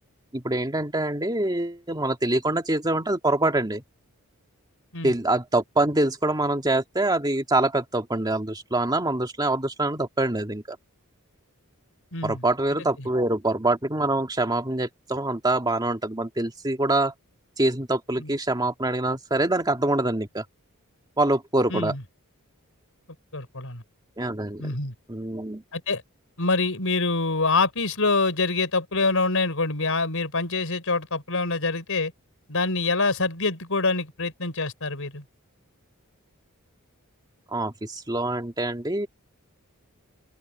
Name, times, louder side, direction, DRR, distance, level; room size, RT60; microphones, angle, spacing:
voice 1, 0.3-3.8 5.0-10.8 12.2-17.1 17.6-20.4 21.2-21.9 24.2-24.7 25.1-25.6 37.5-39.1, right 2 dB, 20° right, 2.2 m, -25 dB
voice 2, 12.1-12.5 13.0-13.1 18.2-18.3 21.7-22.0 23.3-23.8 24.6-24.9 25.7-26.0 26.4-32.1 32.5-35.2, left 3 dB, 65° left, 5.6 m, -25 dB
open air
head